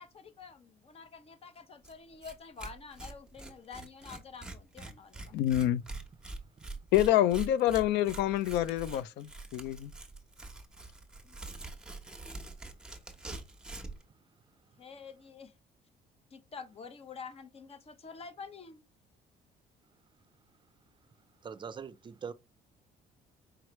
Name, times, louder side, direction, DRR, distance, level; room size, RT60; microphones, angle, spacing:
voice 1, 0.0-5.3 11.2-11.4 14.8-15.5 16.3-18.8, left 5 dB, 35° left, 0.8 m, -48 dB
Tearing, 1.8-1.9 2.2-2.3 2.6-14.0, right 3 dB, 5° right, 1.0 m, -44 dB
voice 2, 5.3-5.8 6.9-9.9, left 13 dB, 85° left, 0.4 m, -27 dB
voice 3, 21.4-22.3, right 6 dB, 30° right, 0.5 m, -42 dB
4.8 x 3.1 x 3.0 m
cardioid pair, 110°, 17 cm